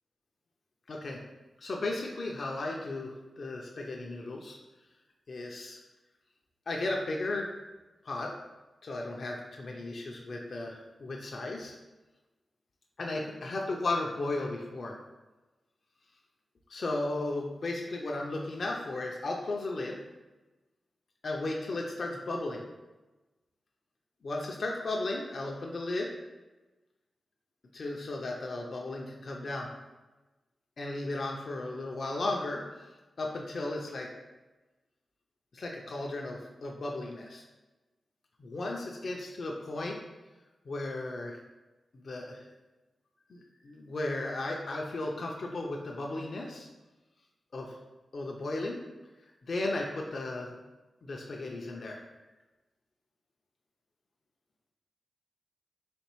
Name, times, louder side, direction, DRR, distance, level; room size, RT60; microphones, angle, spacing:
voice 1, 0.9-1.2 1.6-4.6 5.3-5.8 6.7-7.5 8.0-8.3 8.8-11.8 13.0-14.9 16.7-20.0 21.2-22.6 24.2-26.1 27.7-29.7 30.8-32.9 33.2-34.1 35.5-37.4 38.4-40.0 40.7-41.4 41.9-42.5 43.3-46.7 47.5-47.8 48.1-48.8 49.5-50.5 51.0-52.0, left 2 dB, 60° left, -1 dB, 0.5 m, -35 dB
4.2 x 3.2 x 3.0 m, 1.1 s
cardioid pair, 60°, 0 cm